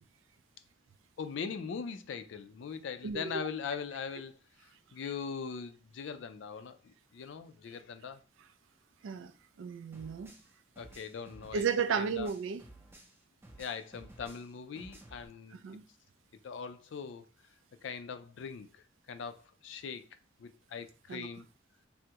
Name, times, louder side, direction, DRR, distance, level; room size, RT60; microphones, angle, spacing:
voice 1, 1.2-8.2 10.8-12.3 13.6-15.6 16.4-17.2 17.8-20.1 20.4-21.5, left 6 dB, 65° left, 0.4 m, -41 dB
voice 2, 3.0-3.4 9.0-9.3 9.6-10.3 11.5-12.6 15.6-15.8 21.1-21.3, right 6 dB, 80° right, 0.3 m, -33 dB
sound 1, 9.9-13.2 13.4-15.3, right 1 dB, 10° right, 0.5 m, -54 dB
3.4 x 2.0 x 2.8 m
head